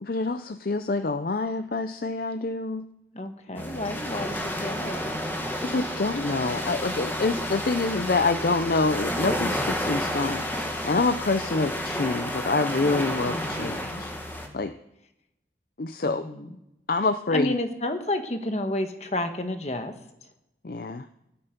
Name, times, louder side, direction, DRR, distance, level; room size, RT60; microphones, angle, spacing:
voice 1, 0.0-2.9 3.5-3.6 5.6-14.1 14.5-14.7 15.8-16.3 16.9-17.5 20.6-21.1, left 3 dB, 55° left, 10 dB, 0.5 m, -26 dB
voice 2, 3.1-5.3 13.3-14.0 16.0-16.6 17.3-19.9, left 1 dB, 35° left, 7 dB, 1.3 m, -31 dB
sound 1, 3.5-14.5, equal, 10° left, 1.6 m, -31 dB
16.5 x 12.5 x 5.2 m, 0.87 s
head